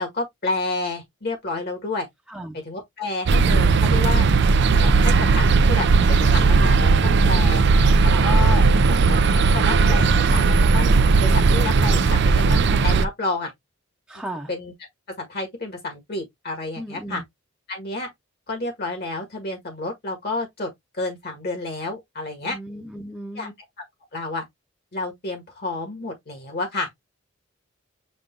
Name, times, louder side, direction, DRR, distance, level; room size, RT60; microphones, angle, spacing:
voice 1, 0.0-2.1 2.6-4.3 4.8-7.6 8.0-10.9 11.2-13.5 14.5-14.7 15.2-17.2 17.7-18.1 18.5-20.7 21.0-22.6 23.3-23.5 24.1-24.4 24.9-26.9, left 2 dB, 55° left, 1.7 m, -30 dB
sound 1, 3.3-13.0, right 4 dB, 60° right, 0.5 m, -17 dB
voice 2, 7.3-7.7 8.0-8.3 14.1-14.5 16.8-17.2 22.4-23.5, right 1 dB, 5° right, 0.7 m, -36 dB
5.2 x 2.5 x 3.7 m
head